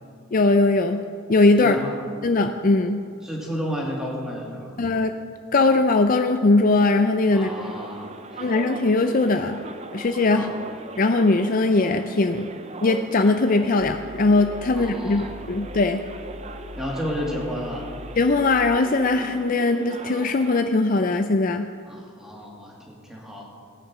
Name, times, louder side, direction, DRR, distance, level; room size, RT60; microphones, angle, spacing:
voice 1, 0.3-1.8 2.2-3.0 4.8-5.1 5.5-7.7 8.4-9.6 9.9-10.5 11.0-12.5 12.8-16.0 18.2-21.7, left 3 dB, 40° left, 7 dB, 0.4 m, -20 dB
voice 2, 1.6-2.0 3.2-4.8 7.3-8.4 10.3-10.5 14.7-15.3 16.8-17.9 21.9-23.5, equal, ahead, -3 dB, 2.4 m, -32 dB
sound 1, 7.4-20.6, right 3 dB, 30° right, 0.5 m, -39 dB
sound 2, 13.8-18.8, left 2 dB, 70° left, 0.8 m, -41 dB
17.5 x 9.4 x 6.1 m, 2.3 s
head